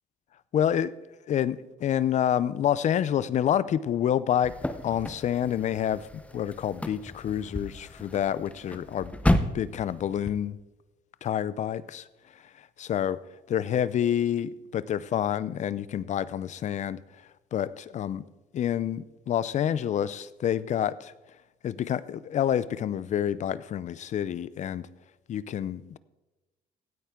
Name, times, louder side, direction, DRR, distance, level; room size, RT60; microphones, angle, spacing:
voice 1, 0.5-0.9 1.3-4.6 4.8-9.2 9.5-10.6 11.2-13.2 13.5-18.3 18.5-21.1 21.6-24.9 25.3-26.0, left 10 dB, 45° left, 18 dB, 0.5 m, -28 dB
sound 1, 4.4-10.3, left 1 dB, 10° left, 0.7 m, -32 dB
16.0 x 9.0 x 3.7 m, 1.1 s
cardioid pair, 110°, 17 cm